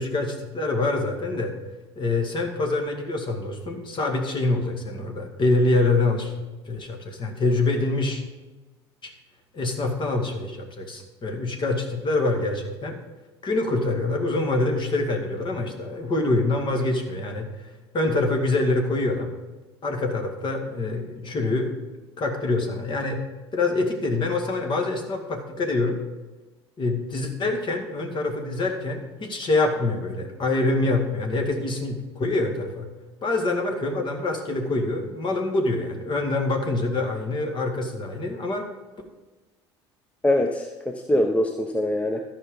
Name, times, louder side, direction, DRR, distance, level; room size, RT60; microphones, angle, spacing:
voice 1, 0.0-1.5 2.0-6.3 6.7-8.2 9.0-9.1 9.5-13.0 13.4-17.5 17.9-19.3 19.8-21.8 22.2-23.2 23.5-26.0 26.8-32.9 33.2-38.7, left 2 dB, 35° left, 3 dB, 2.1 m, -25 dB
voice 2, 40.2-42.2, left 1 dB, 10° left, 4 dB, 0.8 m, -23 dB
13.5 x 5.7 x 5.2 m, 1.2 s
figure-of-eight pair, 65°, 14 cm